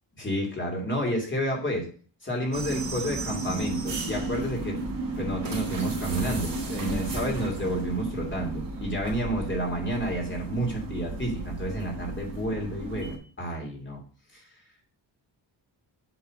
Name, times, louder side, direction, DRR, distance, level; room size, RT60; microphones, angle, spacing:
voice 1, 0.2-1.9 2.2-4.8 5.2-14.0 14.3-14.4, equal, 25° left, 0 dB, 2.8 m, -30 dB
sound 1, 2.5-13.2, right 2 dB, 50° right, 3.0 m, -33 dB
8.7 x 4.1 x 6.5 m, 0.40 s
wide cardioid pair, 175°, 45 cm